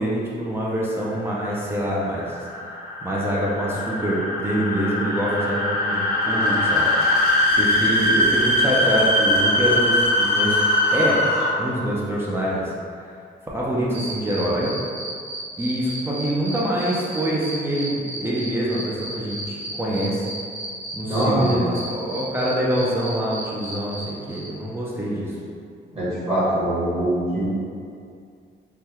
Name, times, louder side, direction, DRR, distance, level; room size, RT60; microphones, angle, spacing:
voice 1, 0.0-2.4 3.0-6.9 7.5-10.6 10.9-11.3 11.6-12.7 13.5-14.7 15.6-20.3 20.9-25.4, equal, 10° right, -6 dB, 0.4 m, -25 dB
sound 1, 1.1-11.8, left 1 dB, 55° left, 0.7 m, -21 dB
sound 2, 13.9-24.0 24.3-24.5, right 2 dB, 70° right, 1.0 m, -34 dB
voice 2, 21.1-21.6 25.9-27.5, right 1 dB, 30° right, -11 dB, 1.4 m, -22 dB
3.4 x 2.2 x 2.9 m, 2.3 s
cardioid pair, 135°, 20 cm